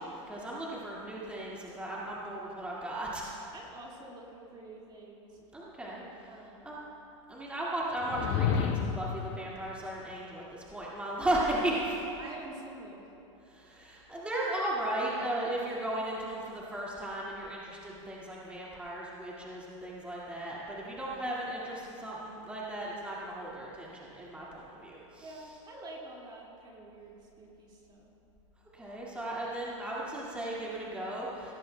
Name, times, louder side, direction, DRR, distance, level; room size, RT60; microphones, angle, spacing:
voice 1, 0.0-3.4 5.5-6.0 6.6-6.8 7.3-11.7 13.5-25.3 28.7-31.5, right 1 dB, 5° right, -6 dB, 2.0 m, -36 dB
voice 2, 3.5-5.4 6.3-6.8 11.3-11.5 12.2-13.0 25.2-28.1, right 2 dB, 25° right, -2 dB, 2.1 m, -48 dB
sound 1, 8.0-9.2, left 7 dB, 40° left, 0.6 m, -29 dB
17.5 x 14.0 x 2.2 m, 2.8 s
hypercardioid pair, 115°, 17 cm